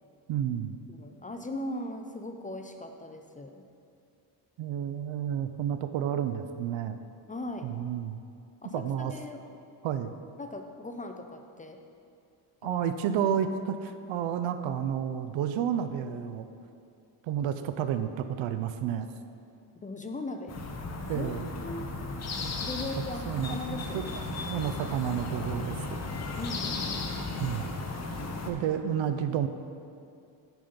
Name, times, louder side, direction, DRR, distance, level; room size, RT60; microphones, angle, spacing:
voice 1, 0.3-0.8 4.6-7.0 7.6-8.2 8.7-9.1 9.8-10.1 12.6-16.5 17.2-19.1 21.1-21.5 23.3-24.1 24.3-26.0 27.4-27.7 28.5-29.5, right 9 dB, 75° right, 9 dB, 0.6 m, -31 dB
voice 2, 0.9-3.6 7.3-7.7 8.6-9.4 10.4-11.8 12.6-12.8 19.7-20.6 21.1-21.3 21.6-21.9 22.6-24.2 26.4-27.4 28.4-28.7, left 2 dB, 20° left, 5 dB, 0.4 m, -39 dB
sound 1, 20.5-28.5, left 3 dB, 35° left, 0.8 m, -35 dB
9.0 x 5.5 x 5.2 m, 2.5 s
cardioid pair, 125°, 46 cm